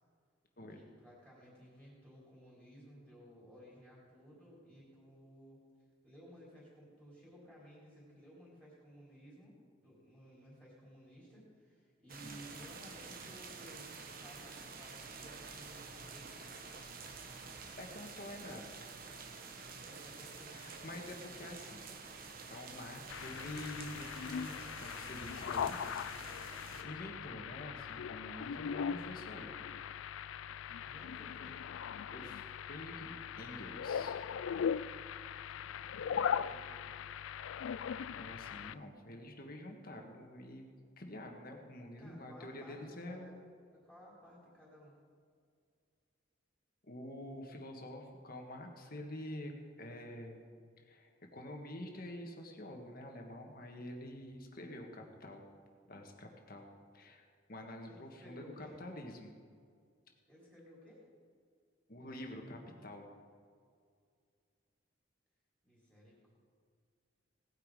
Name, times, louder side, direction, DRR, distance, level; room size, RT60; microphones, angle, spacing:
voice 1, 0.7-5.6 6.0-13.9 14.2-16.4 19.8-21.0 30.8-31.7 34.9-37.0 42.0-43.3 43.7-45.0 57.9-58.8 60.3-61.1 65.6-66.4, equal, ahead, -7 dB, 3.6 m, -57 dB
sound 1, 12.1-26.8, right 4 dB, 45° right, 1.1 m, -49 dB
voice 2, 17.8-18.7 20.5-21.9 22.5-26.2 26.8-29.6 32.1-34.2 38.1-40.6 41.0-43.5 46.8-49.5 49.8-50.4 50.8-55.5 55.9-59.4 61.9-63.1, left 1 dB, 50° left, 2 dB, 1.6 m, -47 dB
sound 2, 23.1-38.7, left 7 dB, 80° left, 0.3 m, -40 dB
18.0 x 9.1 x 4.9 m, 2.1 s
head